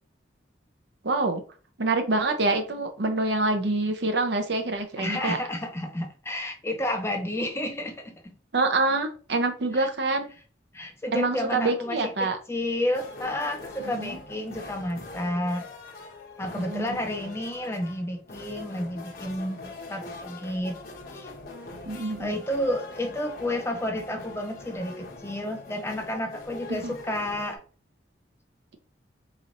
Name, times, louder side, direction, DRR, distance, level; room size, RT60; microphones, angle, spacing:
voice 1, 1.0-1.4 1.8-5.4 8.5-10.3 11.1-12.4 13.9-14.2 16.6-17.0 21.8-22.3 26.7-27.0, right 2 dB, 60° right, 0.6 m, -26 dB
voice 2, 5.0-8.3 9.8-9.9 10.7-15.6 16.4-20.8 21.1-21.3 22.2-27.6, left 1 dB, 15° left, 0.4 m, -31 dB
sound 1, 12.9-27.6, left 3 dB, 50° left, 0.8 m, -42 dB
4.1 x 3.0 x 2.5 m
head